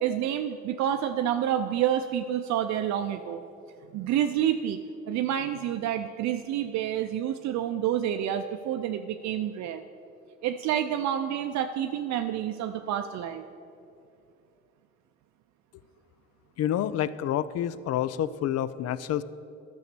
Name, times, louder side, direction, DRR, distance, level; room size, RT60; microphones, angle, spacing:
voice 1, 0.0-3.4 3.9-4.8 5.1-9.8 10.4-13.4, right 10 dB, 70° right, 7 dB, 0.5 m, -28 dB
voice 2, 16.6-19.2, left 11 dB, 60° left, 17 dB, 0.5 m, -28 dB
11.0 x 6.3 x 6.8 m, 2.7 s
supercardioid pair, 80°, 29 cm